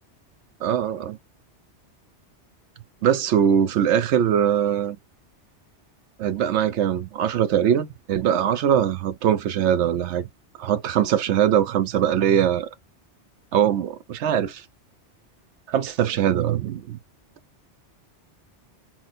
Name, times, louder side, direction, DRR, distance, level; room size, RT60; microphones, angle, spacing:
voice 1, 0.6-1.2 3.0-5.0 6.2-10.3 10.6-12.7 13.5-14.6 15.7-17.0, right 9 dB, 80° right, 0.9 m, -22 dB
5.9 x 2.1 x 2.5 m
omnidirectional pair, 1.2 m